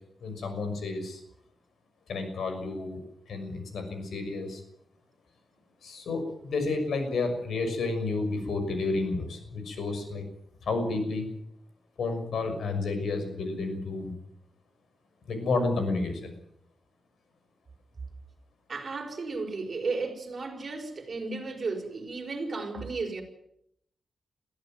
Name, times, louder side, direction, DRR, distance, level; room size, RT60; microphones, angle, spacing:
voice 1, 0.2-1.2 2.1-3.0 3.3-4.6 5.8-10.2 10.6-11.3 12.0-14.1 15.3-16.3, left 3 dB, 90° left, 6.2 m, -31 dB
voice 2, 18.7-23.2, right 3 dB, 40° right, 5.4 m, -34 dB
22.5 x 15.5 x 9.4 m
wide cardioid pair, 135°, 0 cm